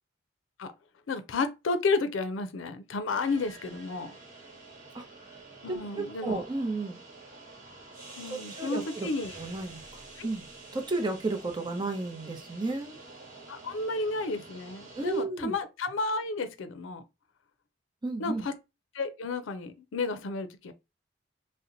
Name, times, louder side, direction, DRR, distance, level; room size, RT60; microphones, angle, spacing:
voice 1, 1.1-4.1 5.6-6.4 8.2-9.4 10.2-10.3 13.5-17.0 18.2-18.5 18.9-20.7, left 3 dB, 90° left, 0.5 m, -32 dB
sound 1, 3.1-15.2, right 3 dB, 45° right, 1.2 m, -48 dB
voice 2, 5.7-7.0 8.3-9.1 9.4-10.5 10.7-13.0 15.0-15.5 18.0-18.5, right 3 dB, 25° right, 0.6 m, -33 dB
2.8 x 2.1 x 3.8 m
head